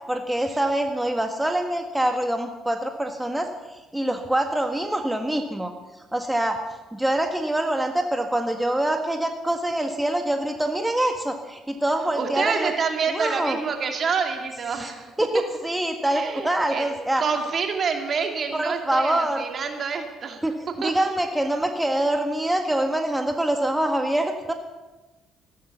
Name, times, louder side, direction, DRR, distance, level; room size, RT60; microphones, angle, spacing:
voice 1, 0.1-6.6 6.9-12.7 13.1-13.6 14.7-14.9 15.2-17.2 18.5-19.4 20.4-24.5, right 1 dB, 10° right, 4 dB, 1.7 m, -25 dB
voice 2, 12.2-15.1 16.1-16.9 17.2-20.4 20.8-21.1, right 5 dB, 50° right, 4 dB, 2.9 m, -27 dB
15.5 x 13.0 x 7.0 m, 1.1 s
hypercardioid pair, 55°, 0 cm